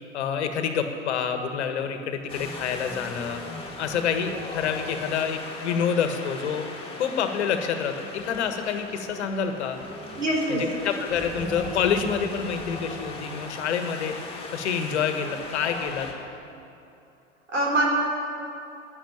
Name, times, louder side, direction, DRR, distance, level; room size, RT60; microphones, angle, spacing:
voice 1, 0.1-3.4 3.8-6.6 7.0-9.8 10.5-14.2 14.5-16.1, left 7 dB, 65° left, 7 dB, 1.5 m, -27 dB
Wind, 2.3-16.1, left 3 dB, 15° left, 2.6 m, -38 dB
voice 2, 10.2-10.6 17.5-17.9, right 1 dB, 75° right, -2 dB, 3.9 m, -23 dB
12.0 x 9.6 x 10.0 m, 2.7 s
figure-of-eight pair, 85°, 37 cm